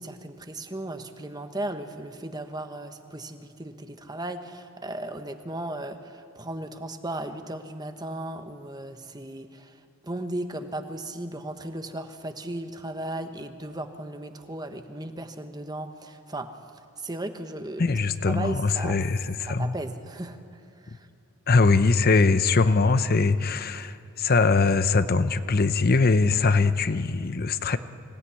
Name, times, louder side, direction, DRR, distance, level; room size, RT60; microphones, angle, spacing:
voice 1, 0.0-16.5 17.0-17.9 18.3-19.0 19.5-20.4 20.8-21.1, right 1 dB, 20° right, 7 dB, 1.2 m, -36 dB
voice 2, 17.8-19.7 21.5-27.8, left 4 dB, 45° left, 11 dB, 0.7 m, -22 dB
25.5 x 17.0 x 9.8 m, 2.6 s
head